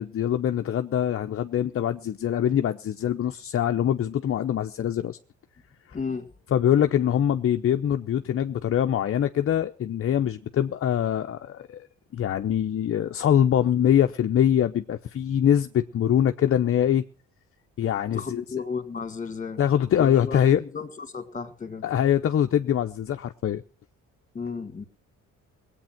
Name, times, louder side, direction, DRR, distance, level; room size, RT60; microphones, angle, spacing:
voice 1, 0.0-5.2 6.5-11.9 12.1-17.0 17.8-18.4 19.6-20.6 21.8-23.6, left 10 dB, 50° left, 0.7 m, -23 dB
voice 2, 5.9-6.3 13.5-13.9 18.1-19.6 20.0-21.8 24.3-24.8, left 5 dB, 25° left, 2.1 m, -34 dB
19.5 x 8.6 x 5.8 m
cardioid pair, 90°, 30 cm